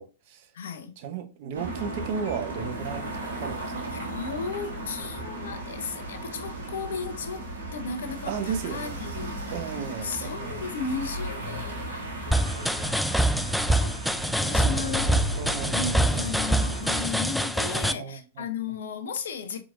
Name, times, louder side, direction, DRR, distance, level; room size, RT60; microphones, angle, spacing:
voice 1, 0.0-0.5 1.0-3.6 8.3-9.0 9.5-10.7 14.4-16.3 17.6-18.4, right 6 dB, 55° right, 0.9 m, -35 dB
voice 2, 0.5-1.0 3.9-9.5 10.0-13.0 13.6-13.9 14.5-15.1 15.7-19.6, left 5 dB, 70° left, 0.8 m, -35 dB
sound 1, 1.5-17.1, right 1 dB, 75° right, 1.7 m, -35 dB
sound 2, 12.3-17.9, right 1 dB, ahead, 0.3 m, -25 dB
4.6 x 3.9 x 2.5 m
figure-of-eight pair, 100°, 0 cm